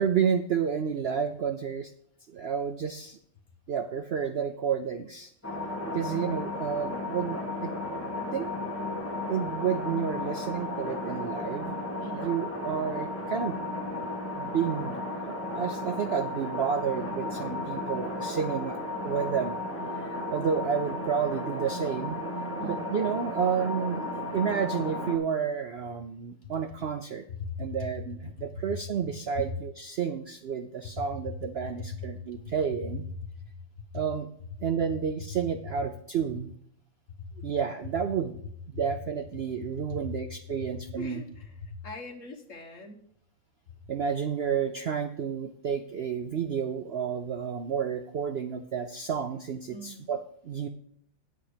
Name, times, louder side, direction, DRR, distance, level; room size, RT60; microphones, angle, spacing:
voice 1, 0.0-1.9 2.3-3.2 3.7-5.3 5.9-7.7 8.3-8.5 9.3-13.6 14.4-18.8 19.0-19.6 20.0-22.2 22.6-24.0 24.3-27.2 27.6-33.0 33.9-34.3 34.6-36.5 37.4-38.4 38.7-41.2 43.9-50.7, right 7 dB, 90° right, 8 dB, 0.5 m, -30 dB
sound 1, 5.4-25.2, left 2 dB, 10° left, 1.6 m, -34 dB
voice 2, 12.0-12.4 22.6-22.8 27.3-27.8 28.6-28.7 29.3-29.4 31.8-32.4 33.4-33.5 37.1-37.5 39.9-40.0 41.0-43.0 49.7-50.1, left 3 dB, 50° left, 4 dB, 1.6 m, -40 dB
9.3 x 9.1 x 5.0 m, 0.65 s
omnidirectional pair, 1.8 m